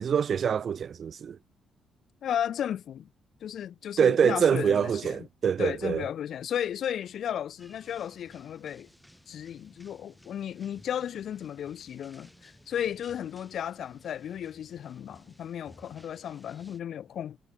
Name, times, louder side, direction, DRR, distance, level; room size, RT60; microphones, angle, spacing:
voice 1, 0.0-1.4 4.0-6.0, right 7 dB, 55° right, 0.5 m, -25 dB
voice 2, 2.2-3.1 3.4-5.3 5.6-8.9 9.3-17.4, left 9 dB, 65° left, 0.9 m, -34 dB
sound 1, 7.6-16.8, left 1 dB, 5° left, 5.3 m, -57 dB
cardioid pair, 90°, 0 cm